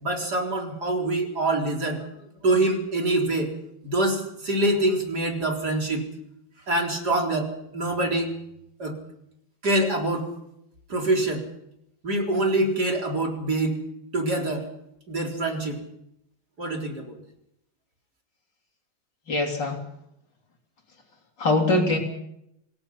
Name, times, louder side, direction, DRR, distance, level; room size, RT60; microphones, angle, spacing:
voice 1, 0.0-2.1 2.4-3.5 3.8-6.0 6.7-8.3 8.8-9.0 9.6-10.3 10.9-11.4 12.0-13.8 14.1-14.7 15.1-15.8 16.6-17.2, right 2 dB, 50° right, 1 dB, 4.6 m, -25 dB
voice 2, 19.3-19.8 21.4-22.0, left 2 dB, 60° left, 2 dB, 4.1 m, -22 dB
27.5 x 19.5 x 5.8 m, 0.79 s
omnidirectional pair, 2.2 m